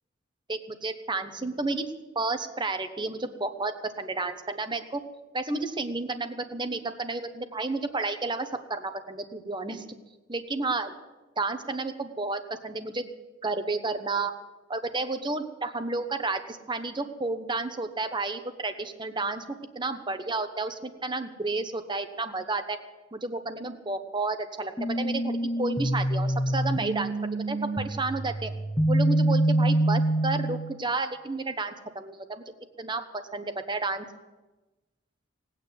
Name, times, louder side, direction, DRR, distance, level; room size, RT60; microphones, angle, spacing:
voice 1, 0.5-1.8 2.1-5.0 5.3-9.8 10.3-10.9 11.4-13.1 13.4-14.3 14.7-19.4 19.7-22.8 23.1-27.1 27.5-28.5 28.9-32.4 32.8-34.1, right 3 dB, 25° right, 8 dB, 1.0 m, -31 dB
sound 1, 24.8-30.7, right 1 dB, 10° left, 1.3 m, -26 dB
18.5 x 9.2 x 7.9 m, 1.2 s
head